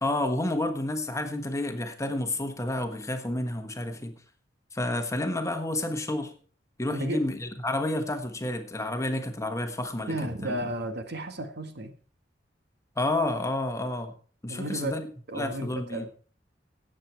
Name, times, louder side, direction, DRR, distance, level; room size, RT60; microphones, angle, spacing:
voice 1, 0.0-4.1 4.7-6.3 6.8-10.5 13.0-14.1 14.4-15.1 15.3-16.1, left 1 dB, 15° left, 1.3 m, -30 dB
voice 2, 10.1-11.9 14.5-14.9 15.3-16.1, right 1 dB, 60° right, 1.6 m, -33 dB
16.5 x 7.7 x 4.5 m
head